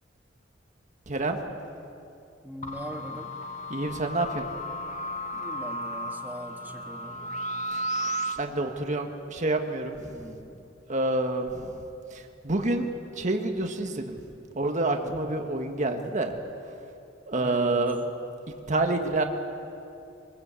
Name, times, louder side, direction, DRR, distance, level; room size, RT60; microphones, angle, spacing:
voice 1, 1.1-1.4 3.7-4.4 7.7-7.8 8.4-10.2 10.9-11.7 12.1-12.9 13.2-14.2 14.5-16.3 17.3-18.0 18.7-19.2, right 2 dB, 40° right, 4 dB, 1.6 m, -28 dB
voice 2, 2.4-3.3 5.3-7.3 10.1-10.6 14.9-15.2 17.4-17.9, equal, 10° right, 4 dB, 1.5 m, -41 dB
sound 1, 2.6-8.4, equal, 40° left, 1.5 m, -34 dB
24.0 x 21.0 x 8.3 m, 2.7 s
head